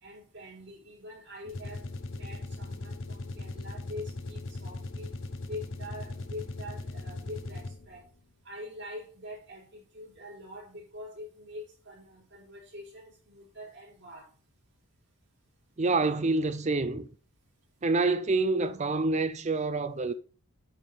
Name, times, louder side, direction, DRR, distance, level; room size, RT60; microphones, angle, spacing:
voice 1, 0.0-1.8 2.1-5.1 5.4-8.1 8.4-14.3, left 1 dB, 50° right, 4.0 m, -44 dB
sound 1, 1.4-8.0, left 2 dB, 55° left, 0.8 m, -39 dB
voice 2, 15.8-17.1 17.8-20.1, right 3 dB, 30° right, 0.5 m, -27 dB
9.0 x 3.6 x 6.0 m
head